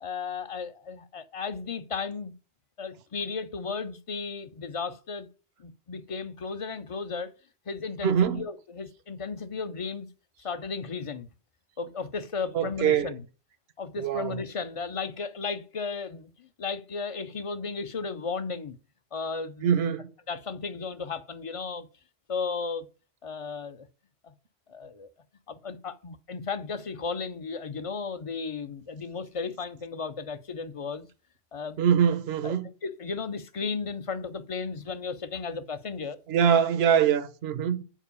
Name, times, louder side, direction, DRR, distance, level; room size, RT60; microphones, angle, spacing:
voice 1, 0.0-2.3 2.8-5.3 5.6-7.3 7.7-10.1 10.4-11.3 11.8-13.3 13.8-18.8 19.1-19.7 20.3-21.9 22.3-22.9 23.2-23.9 24.2-24.3 24.7-25.1 25.5-31.1 31.5-31.8 32.4-32.5 32.8-36.2, left 5 dB, 35° left, 0.6 m, -34 dB
voice 2, 8.0-8.4 12.5-13.1 14.0-14.4 19.6-20.1 31.8-32.7 36.3-37.8, right 8 dB, 75° right, 1.0 m, -23 dB
7.4 x 4.7 x 6.8 m
omnidirectional pair, 1.1 m